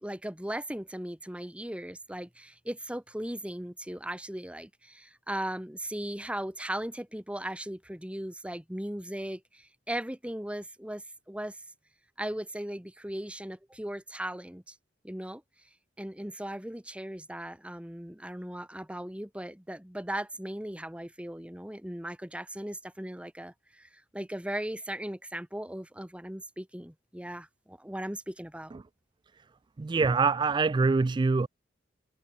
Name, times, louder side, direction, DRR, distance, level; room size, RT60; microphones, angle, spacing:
voice 1, 0.0-11.6 12.2-14.8 15.0-15.4 16.0-28.8, right 1 dB, 5° right, 1.5 m, -38 dB
voice 2, 29.8-31.5, right 4 dB, 25° right, 0.3 m, -24 dB
head